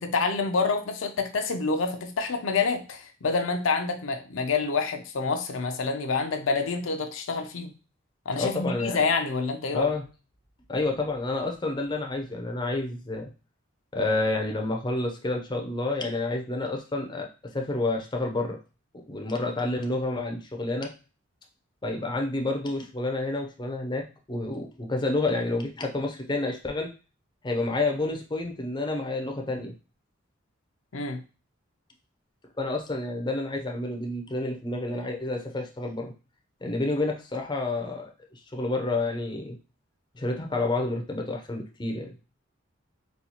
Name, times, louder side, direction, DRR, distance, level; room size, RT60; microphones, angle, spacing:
voice 1, 0.1-7.7 8.3-9.9 30.9-31.2, left 4 dB, 75° left, 5 dB, 0.5 m, -27 dB
voice 2, 8.3-9.0 9.7-10.0 10.7-13.3 13.9-17.3 17.5-18.6 19.1-20.9 21.8-26.9 27.4-29.7 32.6-36.1 36.6-39.6 40.2-42.1, left 2 dB, 20° left, 2 dB, 0.5 m, -29 dB
4.1 x 2.3 x 2.8 m, 0.33 s
head